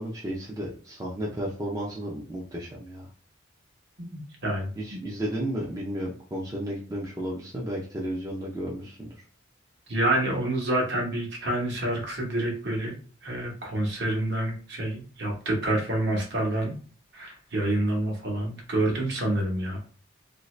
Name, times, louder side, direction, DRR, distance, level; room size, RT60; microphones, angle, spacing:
voice 1, 0.0-3.1 4.8-9.1, right 1 dB, 15° right, -4 dB, 0.5 m, -33 dB
voice 2, 4.0-5.1 9.9-12.9 13.2-16.7 17.1-19.8, right 1 dB, 55° right, 0 dB, 1.1 m, -28 dB
2.8 x 2.7 x 3.2 m, 0.40 s
head